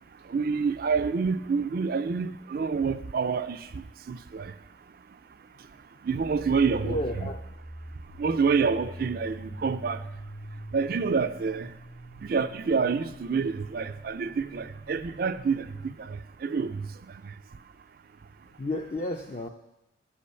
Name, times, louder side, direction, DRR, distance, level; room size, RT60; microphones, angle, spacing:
voice 1, 0.2-4.5 6.0-7.3 8.2-10.1 10.7-11.7 12.2-17.3, right 5 dB, 50° right, 0.4 m, -28 dB
sound 1, 6.2-15.9, equal, 50° left, 1.4 m, -44 dB
voice 2, 6.8-7.4 18.6-19.5, left 1 dB, 35° left, 0.4 m, -31 dB
8.4 x 6.0 x 5.6 m
head